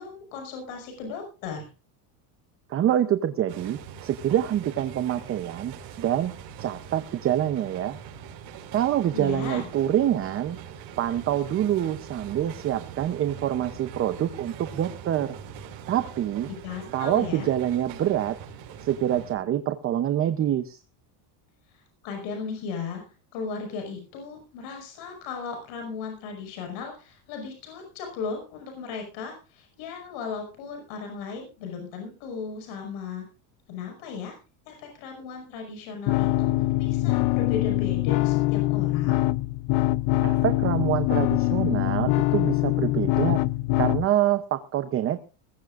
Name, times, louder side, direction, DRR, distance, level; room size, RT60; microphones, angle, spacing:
voice 1, 0.0-1.7 9.1-9.7 16.5-17.5 21.7-33.2 33.7-34.4 34.7-39.2, left 5 dB, 65° left, 3 dB, 6.0 m, -36 dB
voice 2, 2.7-6.3 6.6-8.0 8.7-10.6 11.0-15.4 15.9-16.5 16.9-18.4 18.8-20.8 40.2-43.4 43.8-45.2, right 11 dB, 25° right, 10 dB, 0.7 m, -26 dB
sound 1, 3.5-19.4, right 8 dB, 50° right, 5.5 m, -42 dB
sound 2, 36.1-44.1, left 18 dB, 50° left, 0.7 m, -23 dB
20.5 x 15.5 x 2.5 m, 0.32 s
cardioid pair, 160°, 49 cm